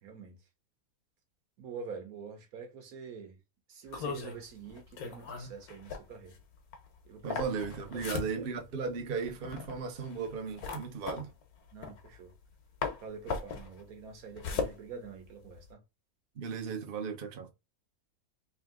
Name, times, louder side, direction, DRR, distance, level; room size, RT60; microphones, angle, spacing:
voice 1, 0.0-0.4 1.6-3.4 3.7-6.4 7.0-7.4 7.9-8.5 11.7-12.3 13.0-15.8, right 5 dB, 75° right, 1.5 m, -46 dB
sound 1, 3.9-12.5 12.8-15.7, left 5 dB, 80° left, 1.3 m, -39 dB
voice 2, 7.2-11.3 16.4-17.5, right 5 dB, 50° right, 0.8 m, -36 dB
3.5 x 2.8 x 3.5 m
omnidirectional pair, 1.6 m